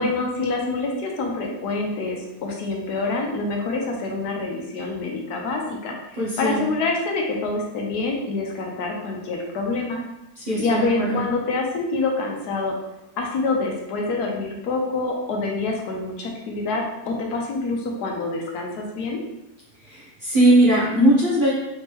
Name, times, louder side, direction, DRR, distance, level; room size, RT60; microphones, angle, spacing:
voice 1, 0.0-10.0 10.5-12.7 13.2-19.2, left 3 dB, 75° left, 0 dB, 1.2 m, -26 dB
voice 2, 6.2-6.7 10.4-11.2 19.9-21.5, right 1 dB, 40° right, -7 dB, 0.8 m, -19 dB
4.3 x 3.2 x 2.9 m, 0.91 s
omnidirectional pair, 1.8 m